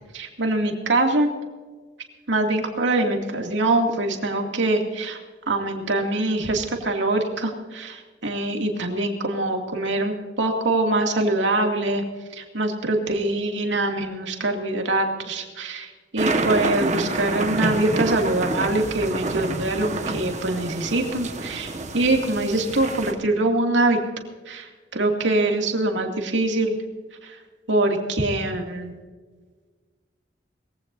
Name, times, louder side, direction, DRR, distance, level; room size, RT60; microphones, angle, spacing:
voice 1, 0.1-1.3 2.3-5.2 5.5-12.0 12.3-24.0 24.5-26.7 27.2-27.4 27.7-28.9, right 2 dB, 85° right, 2 dB, 2.4 m, -24 dB
sound 1, 16.2-23.1, right 2 dB, 40° right, 1.4 m, -28 dB
21.0 x 15.5 x 2.7 m, 1.4 s
head